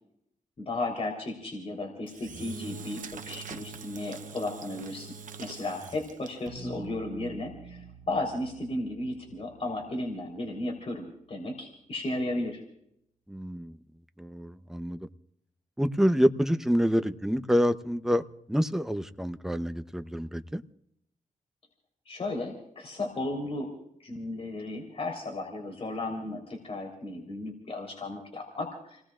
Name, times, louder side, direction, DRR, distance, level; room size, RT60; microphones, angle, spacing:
voice 1, 0.6-5.1 5.4-12.6 22.1-23.7 24.0-29.0, left 2 dB, 45° left, 0 dB, 3.8 m, -34 dB
Engine / Drill, 2.1-6.6, right 6 dB, 70° right, 1.0 m, -43 dB
sound 1, 6.5-11.1, right 4 dB, 50° right, 3.7 m, -47 dB
voice 2, 13.3-13.7 14.2-15.0 15.8-18.2 18.5-20.6, equal, 5° right, 9 dB, 0.8 m, -27 dB
30.0 x 19.0 x 2.5 m, 0.74 s
wide cardioid pair, 110°, 14 cm